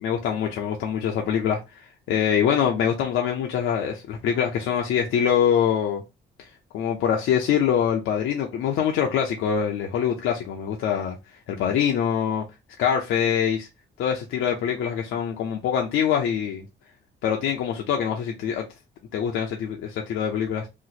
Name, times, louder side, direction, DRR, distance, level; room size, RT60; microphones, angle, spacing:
voice 1, 0.0-6.0 6.7-11.2 11.5-12.5 12.8-13.7 14.0-16.7 17.2-18.7 19.1-20.7, left 8 dB, 85° left, 0.6 m, -24 dB
3.0 x 2.1 x 3.9 m
cardioid pair, 90°, 20 cm